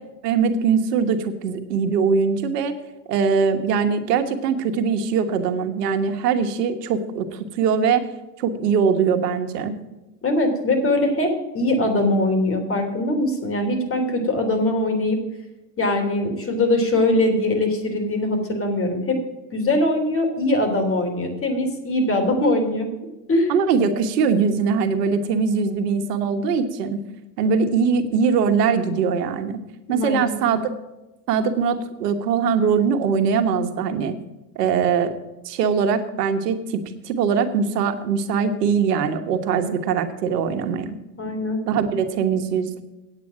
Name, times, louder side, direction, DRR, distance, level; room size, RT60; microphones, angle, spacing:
voice 1, 0.2-2.7 3.1-8.0 8.4-9.8 22.2-22.3 23.5-27.0 27.4-29.6 29.9-30.7 31.3-34.1 34.5-35.1 35.4-40.9 41.7-42.8, right 6 dB, 85° right, 8 dB, 1.5 m, -22 dB
voice 2, 10.2-15.2 15.8-19.2 19.5-22.9 23.3-23.5 29.9-30.6 41.2-41.6, left 1 dB, 30° left, 4 dB, 3.2 m, -22 dB
8.8 x 8.6 x 7.4 m, 1.1 s
supercardioid pair, 110°, 47 cm